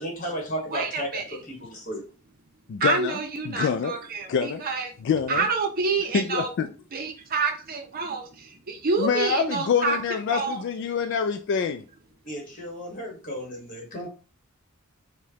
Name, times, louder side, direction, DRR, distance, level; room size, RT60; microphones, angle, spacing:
voice 1, 0.0-1.1 1.5-2.0 12.2-14.1, equal, 40° left, 1.4 m, -34 dB
voice 2, 0.7-1.4 2.8-4.9 5.3-6.5 6.9-10.0 10.3-10.6, right 4 dB, 45° right, 0.6 m, -28 dB
voice 3, 2.7-3.2 3.4-4.0 4.3-4.6 5.0-5.5 6.1-6.7 9.0-11.8, left 6 dB, 55° left, 0.3 m, -26 dB
4.8 x 2.2 x 2.8 m
head